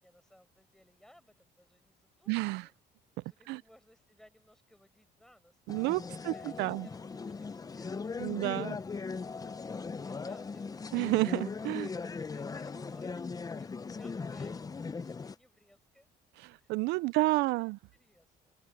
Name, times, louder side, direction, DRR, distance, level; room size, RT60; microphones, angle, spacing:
voice 1, 0.0-2.7 3.2-5.8 6.2-10.9 11.8-16.1 16.6-18.6, equal, 5° left, 4.9 m, -62 dB
voice 2, 2.3-2.7 3.2-3.6 5.7-6.9 8.2-8.8 10.9-11.9 16.4-17.8, right 21 dB, 90° right, 0.4 m, -31 dB
sound 1, 5.7-15.3, left 4 dB, 20° left, 0.7 m, -39 dB
cardioid pair, 110°, 17 cm